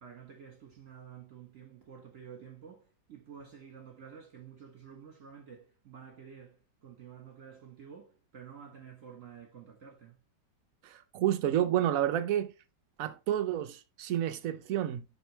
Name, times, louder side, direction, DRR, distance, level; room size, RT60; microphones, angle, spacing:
voice 1, 0.0-10.2, right 7 dB, 50° right, 1.6 m, -50 dB
voice 2, 10.8-12.5 13.0-15.0, right 11 dB, 65° right, 0.9 m, -30 dB
7.7 x 5.4 x 3.1 m
omnidirectional pair, 2.0 m